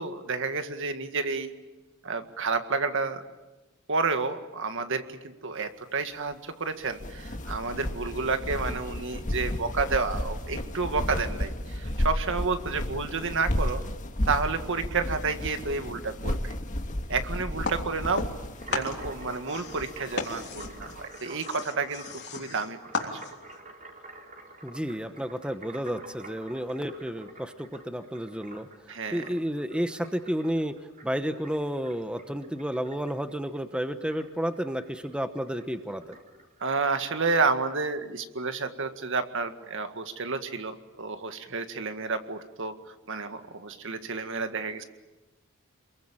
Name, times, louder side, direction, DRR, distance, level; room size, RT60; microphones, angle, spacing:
voice 1, 0.0-1.5 2.0-3.2 3.9-13.8 14.3-16.5 17.1-18.3 18.7-23.2 28.9-29.2 36.6-44.8, right 4 dB, 60° right, 8 dB, 1.9 m, -30 dB
sound 1, 6.8-21.0, left 1 dB, 35° left, 1.7 m, -33 dB
sound 2, 17.6-18.4 18.7-23.6, left 4 dB, 55° left, 3.4 m, -35 dB
sound 3, 18.6-37.7, right 2 dB, 40° right, 4.2 m, -49 dB
voice 2, 24.6-28.7 29.1-30.8 31.0-36.2, equal, 5° right, 9 dB, 1.0 m, -31 dB
28.0 x 22.5 x 8.9 m, 1.1 s
head